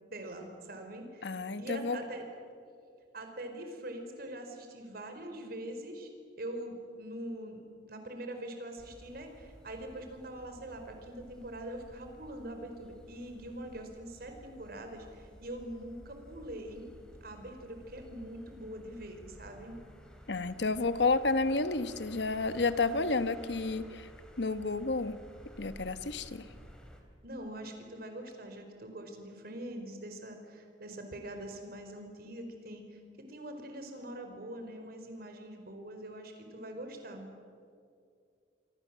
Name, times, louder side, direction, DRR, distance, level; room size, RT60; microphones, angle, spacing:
voice 1, 0.1-2.3 3.1-6.1 6.4-7.6 7.9-16.9 17.2-19.8 27.2-37.3, right 1 dB, 55° right, 5 dB, 4.5 m, -43 dB
voice 2, 1.2-2.0 20.3-24.1 24.4-25.2 25.6-26.4, left 3 dB, 70° left, 12 dB, 1.2 m, -31 dB
sound 1, 8.8-27.0, equal, 5° left, 3.3 m, -54 dB
26.5 x 24.5 x 7.6 m, 2.4 s
head